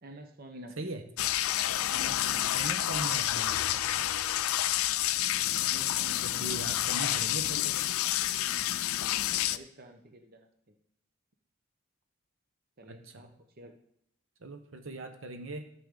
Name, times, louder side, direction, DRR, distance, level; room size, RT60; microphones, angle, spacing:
voice 1, 0.0-0.7 1.9-2.5 5.6-6.8 8.5-8.8 9.5-10.5 12.8-13.3 13.6-13.7, right 1 dB, 45° right, 5 dB, 1.0 m, -49 dB
sound 1, 1.2-9.6, left 13 dB, 90° left, 0.4 m, -29 dB
voice 2, 2.5-4.1 4.6-4.7 6.0-7.8 12.9-13.3 14.4-15.6, right 2 dB, 70° right, 6 dB, 1.0 m, -40 dB
13.5 x 6.8 x 3.8 m, 0.73 s
head